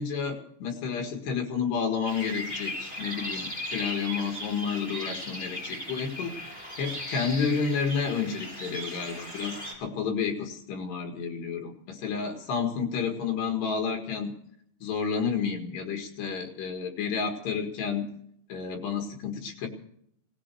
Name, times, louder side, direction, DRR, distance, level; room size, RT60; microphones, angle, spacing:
voice 1, 0.0-6.3 6.8-14.3 14.8-18.1 18.5-19.7, left 6 dB, 70° left, 3 dB, 3.9 m, -30 dB
sound 1, 2.0-9.7, left 1 dB, 10° left, 5.0 m, -37 dB
18.5 x 16.0 x 4.7 m, 0.69 s
omnidirectional pair, 5.2 m